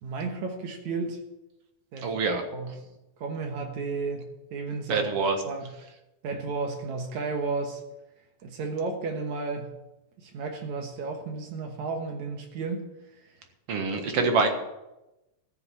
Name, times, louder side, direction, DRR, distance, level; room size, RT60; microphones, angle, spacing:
voice 1, 0.0-1.2 1.9-2.1 2.5-2.7 3.2-5.1 5.4-5.7 6.2-7.8 8.4-9.7 10.2-12.9, right 4 dB, 70° right, 4 dB, 2.7 m, -33 dB
voice 2, 2.0-2.4 4.9-5.4 13.7-14.5, right 4 dB, 55° right, 4 dB, 2.3 m, -25 dB
14.0 x 7.0 x 8.1 m, 0.96 s
omnidirectional pair, 3.5 m